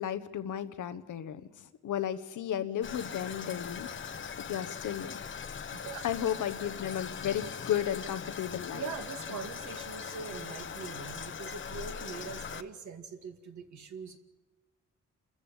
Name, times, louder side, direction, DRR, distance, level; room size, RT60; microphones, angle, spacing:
voice 1, 0.0-3.9 4.4-5.1 6.0-8.8, left 10 dB, 90° left, 11 dB, 1.2 m, -34 dB
Toilet flush, 2.8-12.6, left 7 dB, 40° left, 1.0 m, -41 dB
voice 2, 5.7-6.0 8.7-14.2, right 5 dB, 70° right, 4 dB, 2.3 m, -42 dB
29.0 x 14.0 x 8.9 m, 1.1 s
wide cardioid pair, 145°, 30 cm